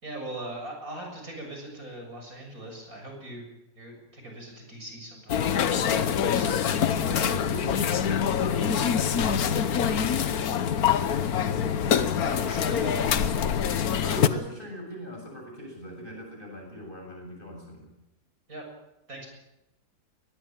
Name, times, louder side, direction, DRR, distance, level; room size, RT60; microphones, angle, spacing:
voice 1, 0.0-3.4 3.7-6.7 11.2-13.9 18.5-18.6 19.1-19.3, right 1 dB, 60° right, 2 dB, 7.4 m, -41 dB
sound 1, 5.3-14.3, left 8 dB, 65° left, 1.5 m, -25 dB
voice 2, 7.0-10.4 14.0-17.9, left 1 dB, 30° left, 1 dB, 7.5 m, -40 dB
22.0 x 20.5 x 7.5 m, 0.93 s
omnidirectional pair, 1.7 m